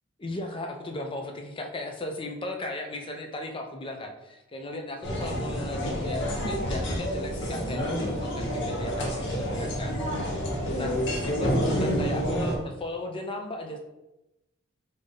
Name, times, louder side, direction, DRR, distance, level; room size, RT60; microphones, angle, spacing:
voice 1, 0.2-10.0 10.8-13.8, left 1 dB, 25° left, 3 dB, 0.4 m, -36 dB
sound 1, 5.0-12.6, equal, 60° left, 0.8 m, -29 dB
3.5 x 2.7 x 3.6 m, 0.96 s
head